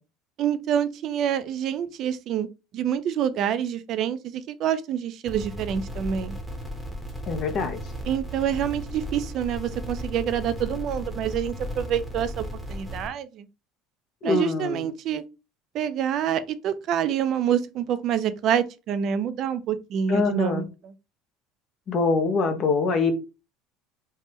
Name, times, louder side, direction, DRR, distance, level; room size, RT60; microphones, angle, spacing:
voice 1, 0.4-2.5 2.7-6.3 8.1-13.4 14.2-15.2 15.7-20.6, right 9 dB, 55° right, 0.4 m, -27 dB
sound 1, 5.3-13.1, equal, ahead, 0.9 m, -35 dB
voice 2, 7.3-7.8 14.2-14.8 20.1-20.6 21.9-23.1, left 4 dB, 50° left, 0.7 m, -24 dB
3.3 x 2.1 x 2.9 m
supercardioid pair, 105°, 0 cm